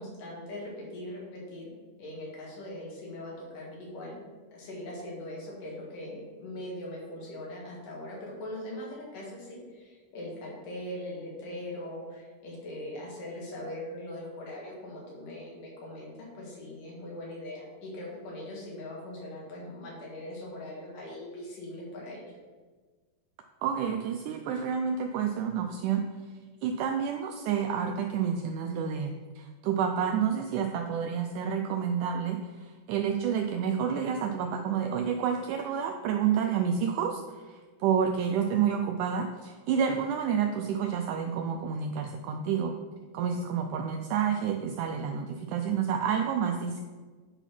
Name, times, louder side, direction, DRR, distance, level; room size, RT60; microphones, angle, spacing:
voice 1, 0.0-1.7 2.0-22.4, left 1 dB, 70° left, -3 dB, 3.4 m, -41 dB
voice 2, 23.6-26.1 26.6-42.8 43.1-46.8, right 7 dB, 85° right, 5 dB, 1.8 m, -29 dB
9.0 x 4.0 x 5.8 m, 1.4 s
omnidirectional pair, 4.0 m